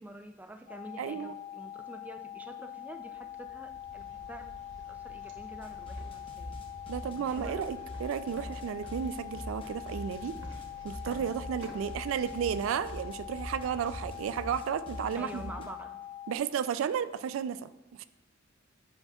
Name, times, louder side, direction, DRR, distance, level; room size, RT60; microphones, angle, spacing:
voice 1, 0.0-4.5 4.9-6.5 7.2-7.7 15.2-16.0, right 1 dB, 10° right, 6 dB, 0.3 m, -47 dB
sound 1, 0.7-16.4, left 12 dB, 65° left, 0.4 m, -44 dB
voice 2, 1.0-1.3 6.9-10.4 10.8-15.5 16.3-17.7 18.0-18.1, right 8 dB, 90° right, 14 dB, 0.3 m, -33 dB
sound 2, 3.1-15.1, right 1 dB, 65° right, 1.0 m, -50 dB
sound 3, 5.6-15.7, left 1 dB, 30° left, 0.9 m, -44 dB
8.0 x 5.5 x 2.3 m, 1.0 s
head